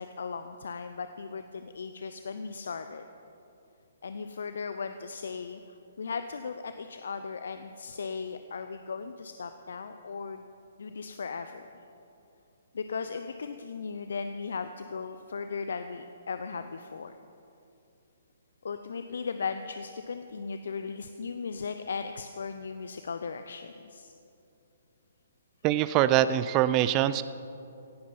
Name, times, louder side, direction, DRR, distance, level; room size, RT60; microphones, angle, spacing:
voice 1, 0.0-3.0 4.0-10.4 10.8-11.7 12.7-17.2 18.6-24.1, left 5 dB, 65° left, 9 dB, 0.6 m, -37 dB
voice 2, 25.6-27.2, right 12 dB, 30° right, 14 dB, 0.4 m, -23 dB
16.5 x 11.0 x 5.7 m, 2.7 s
figure-of-eight pair, 130°, 0 cm